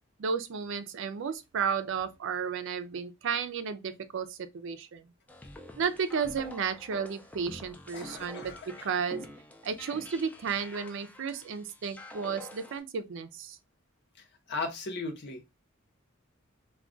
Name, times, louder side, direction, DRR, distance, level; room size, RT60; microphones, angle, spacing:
voice 1, 0.2-5.1 5.8-9.2 9.6-13.6, right 6 dB, 65° right, 0.4 m, -33 dB
sound 1, 5.3-12.8, left 1 dB, 5° left, 0.4 m, -48 dB
voice 2, 7.9-8.6 14.5-15.5, left 3 dB, 55° left, 0.8 m, -36 dB
2.2 x 2.2 x 3.7 m
head